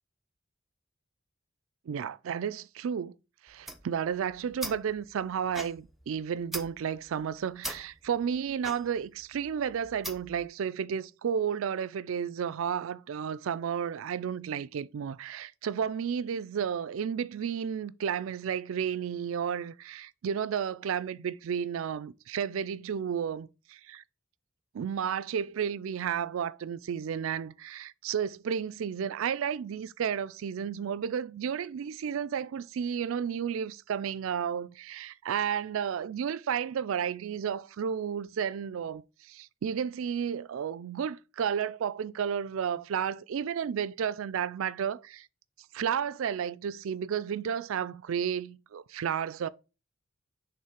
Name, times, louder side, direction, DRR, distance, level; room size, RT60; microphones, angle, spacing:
voice 1, 1.9-3.1 3.4-24.0 24.7-45.3 45.7-49.5, right 7 dB, 75° right, 0.3 m, -32 dB
sound 1, 3.5-10.5, right 1 dB, ahead, 0.5 m, -43 dB
5.5 x 3.5 x 5.1 m
head